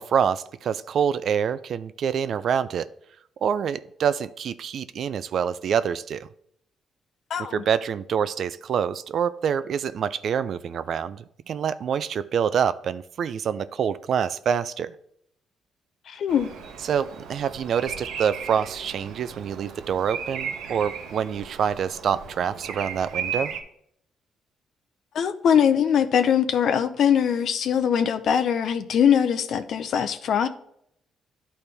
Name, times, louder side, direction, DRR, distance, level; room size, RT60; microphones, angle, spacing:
voice 1, 0.0-2.9 3.4-6.3 7.5-14.9 16.8-23.5, right 8 dB, 60° right, 0.4 m, -26 dB
voice 2, 7.3-7.6 16.1-16.5 25.1-30.5, left 8 dB, 65° left, 0.5 m, -22 dB
Bird vocalization bird call bird song, 16.3-23.6, right 6 dB, 85° right, 0.9 m, -36 dB
10.5 x 4.2 x 3.4 m
cardioid pair, 90°, 0 cm